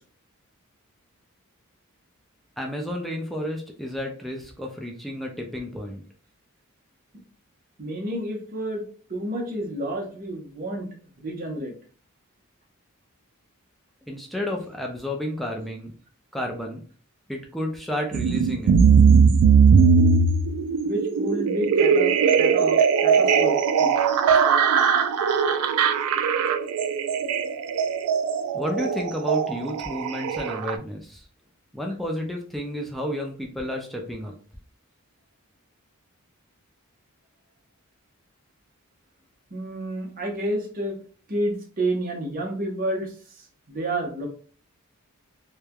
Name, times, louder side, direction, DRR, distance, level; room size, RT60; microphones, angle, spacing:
voice 1, 2.6-6.0 14.1-15.9 16.3-16.8 17.3-18.8 28.5-31.2 31.7-34.3, equal, ahead, 0 dB, 0.3 m, -31 dB
voice 2, 7.8-8.8 9.1-10.9 11.2-11.7 20.8-24.1 39.5-41.0 41.3-44.3, right 1 dB, 40° right, 0 dB, 0.7 m, -30 dB
sound 1, 18.1-30.8, right 6 dB, 85° right, 0.3 m, -20 dB
3.1 x 2.1 x 2.2 m, 0.42 s
head